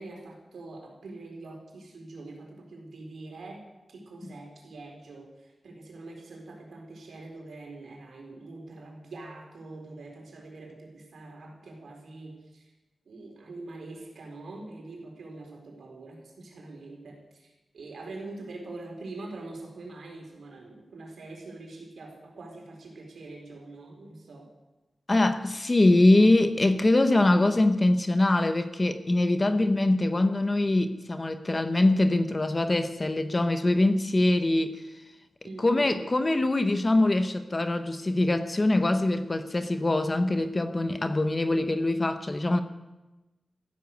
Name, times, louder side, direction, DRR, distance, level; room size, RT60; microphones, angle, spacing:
voice 1, 0.0-12.7 13.1-24.5 35.4-36.0, right 2 dB, 85° right, 1 dB, 4.4 m, -44 dB
voice 2, 25.1-34.8 35.6-42.6, left 2 dB, 25° left, 9 dB, 0.9 m, -23 dB
15.0 x 12.0 x 8.0 m, 1.1 s
wide cardioid pair, 175°, 0 cm